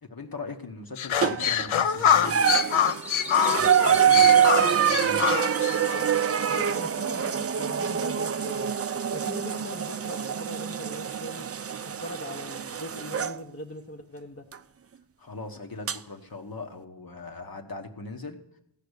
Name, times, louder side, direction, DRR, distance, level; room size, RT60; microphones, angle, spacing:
voice 1, 0.0-2.6 3.5-5.3 15.2-18.4, left 3 dB, 50° left, 4 dB, 1.4 m, -39 dB
sound 1, 1.0-6.0, left 8 dB, 85° left, 0.6 m, -25 dB
sound 2, 1.2-1.7 2.2-13.4 14.5-14.6 15.9-16.0, right 8 dB, 35° right, 0.4 m, -25 dB
Bird vocalization bird call bird song, 1.6-7.4, right 1 dB, 5° right, 0.8 m, -43 dB
voice 2, 6.5-8.7 9.1-11.5 11.8-14.5, left 1 dB, 30° left, 3 dB, 1.0 m, -40 dB
15.0 x 5.9 x 8.1 m, 0.83 s
wide cardioid pair, 80°, 47 cm